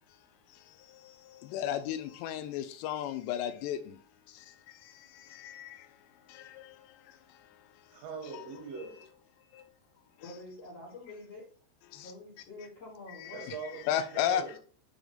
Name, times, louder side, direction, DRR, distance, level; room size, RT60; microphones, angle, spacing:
voice 1, 1.5-3.8 13.9-14.4, left 10 dB, 85° left, 2.6 m, -31 dB
voice 2, 7.9-9.1 13.3-14.6, right 5 dB, 80° right, 3.4 m, -42 dB
voice 3, 10.2-11.5 11.9-13.5, left 2 dB, 65° left, 1.5 m, -47 dB
7.8 x 3.5 x 3.9 m
omnidirectional pair, 5.0 m